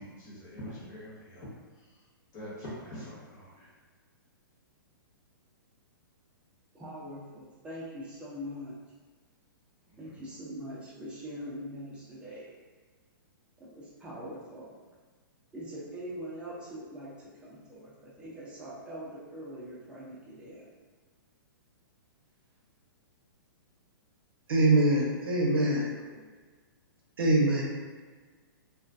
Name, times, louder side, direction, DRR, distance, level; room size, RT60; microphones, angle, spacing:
voice 1, 0.0-1.5 2.3-3.7 9.9-10.1, equal, 25° left, -7 dB, 1.0 m, -44 dB
voice 2, 6.7-8.8 10.0-12.6 13.6-14.7 15.5-20.7 25.6-26.2, equal, 10° right, -7 dB, 0.6 m, -43 dB
voice 3, 24.5-25.8 27.2-27.6, right 2 dB, 85° right, -2 dB, 0.7 m, -23 dB
2.3 x 2.1 x 2.6 m, 1.4 s
hypercardioid pair, 135°, 12 cm